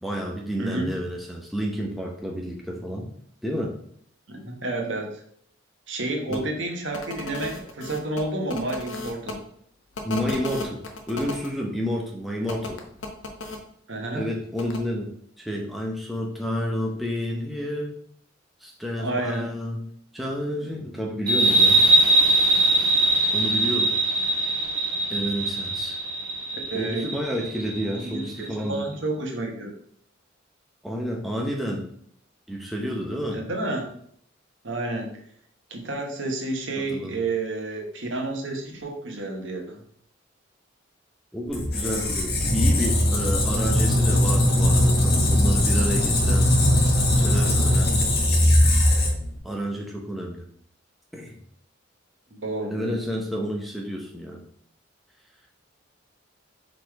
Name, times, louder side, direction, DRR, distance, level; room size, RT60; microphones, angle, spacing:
voice 1, 0.0-3.1 3.4-3.7 6.3-6.4 10.0-10.8 11.1-12.8 14.1-15.1 15.4-17.9 18.6-19.8 20.1-21.8 23.3-23.9 24.4-24.5 25.1-26.0 26.7-28.8 30.8-31.8 32.5-33.4 36.8-37.2 41.3-46.5 47.1-48.1 49.4-50.4 51.1-51.4 52.7-54.4, equal, ahead, -1 dB, 0.9 m, -30 dB
voice 2, 0.6-0.9 4.3-5.2 5.9-9.4 13.9-14.3 19.0-19.5 26.7-27.1 28.0-29.7 33.3-33.9 34.6-35.2 35.7-39.8 52.4-53.0, right 2 dB, 70° right, 2 dB, 1.3 m, -30 dB
sound 1, 6.3-6.4 6.9-9.3 9.9-11.5 12.5-13.6 14.6-14.8, left 3 dB, 70° left, 1.0 m, -34 dB
sound 2, 21.3-28.5, right 2 dB, 20° right, 2.0 m, -22 dB
Squeak, 41.5-49.4, left 1 dB, 50° left, 1.4 m, -20 dB
5.1 x 4.2 x 4.7 m, 0.65 s
head